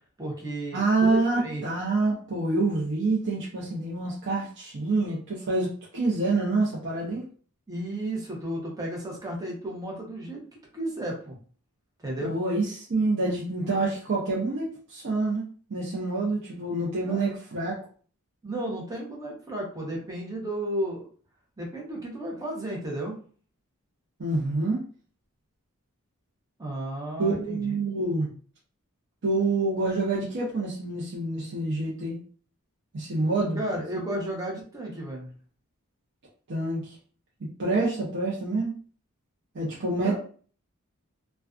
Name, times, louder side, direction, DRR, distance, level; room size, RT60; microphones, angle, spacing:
voice 1, 0.2-1.6 7.7-10.4 10.7-11.4 12.0-12.3 17.0-17.2 18.4-21.1 21.6-23.2 26.6-27.8 33.5-35.3 40.0-40.2, right 1 dB, 15° right, -1 dB, 0.7 m, -33 dB
voice 2, 0.7-7.2 12.2-17.8 24.2-24.8 27.2-28.3 29.2-32.2 32.9-33.8 36.5-37.0 37.6-38.8 39.5-40.2, right 2 dB, 50° right, -5 dB, 0.6 m, -27 dB
2.4 x 2.2 x 2.3 m, 0.43 s
head